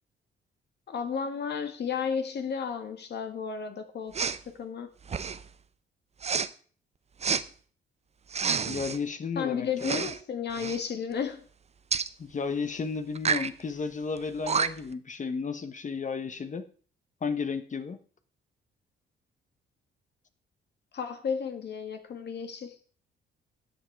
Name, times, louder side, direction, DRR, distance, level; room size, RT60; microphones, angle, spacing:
voice 1, 0.9-4.3 4.6-4.9 9.3-11.4 20.9-22.7, left 6 dB, 55° left, 6 dB, 1.7 m, -33 dB
Respiratory sounds, 4.1-4.4 5.0-5.5 6.2-6.5 7.2-7.4 8.3-9.0 9.8-10.2 10.5-10.8 11.9-12.1 13.2-13.5 14.2-14.3 14.5-14.9, right 6 dB, 35° right, 0.7 m, -29 dB
voice 2, 8.6-9.7 12.2-16.7 17.2-18.0, left 5 dB, 40° left, 10 dB, 1.2 m, -33 dB
13.5 x 7.9 x 4.6 m, 0.43 s
cardioid pair, 90°, 20 cm